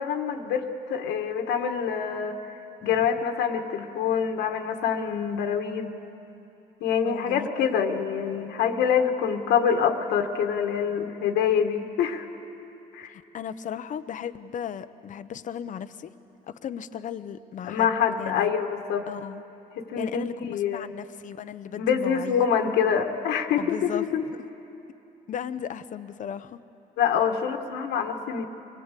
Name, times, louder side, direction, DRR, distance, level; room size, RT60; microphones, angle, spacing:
voice 1, 0.0-2.4 2.8-5.9 6.8-12.2 12.9-13.1 17.6-19.0 19.8-20.9 21.8-24.2 27.0-28.5, left 7 dB, 80° left, 4 dB, 1.6 m, -25 dB
voice 2, 7.0-7.7 13.1-16.1 16.5-17.9 18.2-18.5 19.1-19.4 20.0-22.5 23.6-24.4 25.3-26.6, left 9 dB, 50° left, 12 dB, 0.9 m, -36 dB
24.0 x 19.5 x 8.4 m, 2.9 s
cardioid pair, 110°, 17 cm